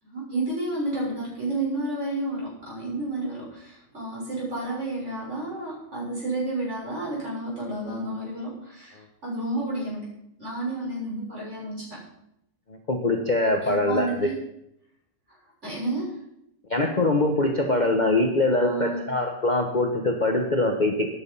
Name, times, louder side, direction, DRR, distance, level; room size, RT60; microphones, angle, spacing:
voice 1, 0.0-10.1 10.4-12.0 13.6-14.3 15.3-15.4 15.6-16.1 18.4-19.0, right 2 dB, 40° right, -6 dB, 7.0 m, -31 dB
voice 2, 12.9-14.3 16.7-21.2, left 2 dB, 30° left, 2 dB, 1.2 m, -23 dB
13.0 x 10.5 x 5.6 m, 0.78 s
omnidirectional pair, 1.8 m